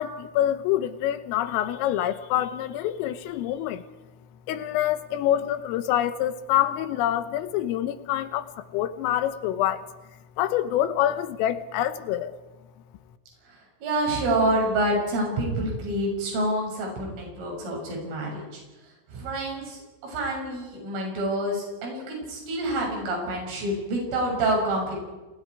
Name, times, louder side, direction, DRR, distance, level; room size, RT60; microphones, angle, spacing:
voice 1, 0.0-3.8 4.5-8.5 8.7-9.8 10.4-12.3, left 12 dB, 90° left, 11 dB, 3.8 m, -26 dB
voice 2, 13.5-18.6 19.1-25.0, right 1 dB, 75° right, -1 dB, 9.4 m, -27 dB
29.0 x 29.0 x 4.8 m, 1.2 s
omnidirectional pair, 5.8 m